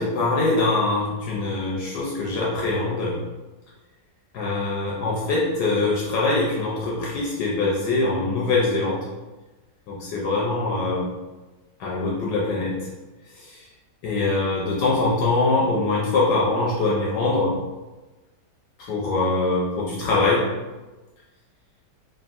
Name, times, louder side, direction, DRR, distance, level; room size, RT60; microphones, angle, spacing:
voice 1, 0.0-3.2 4.3-9.0 9.9-11.1 11.8-12.7 13.3-13.6 14.0-17.5 18.8-20.4, left 3 dB, 75° left, -4 dB, 1.1 m, -23 dB
3.4 x 2.3 x 2.4 m, 1.2 s
omnidirectional pair, 1.9 m